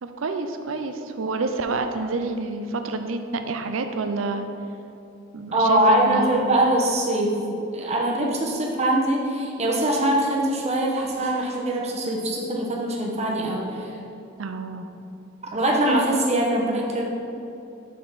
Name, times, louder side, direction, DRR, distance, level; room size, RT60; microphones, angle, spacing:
voice 1, 0.0-4.5 5.3-6.5 14.4-14.9, right 3 dB, 85° right, 7 dB, 0.5 m, -28 dB
voice 2, 5.5-13.9 15.5-17.0, right 1 dB, 35° right, -2 dB, 1.0 m, -22 dB
6.5 x 5.5 x 4.0 m, 2.8 s
head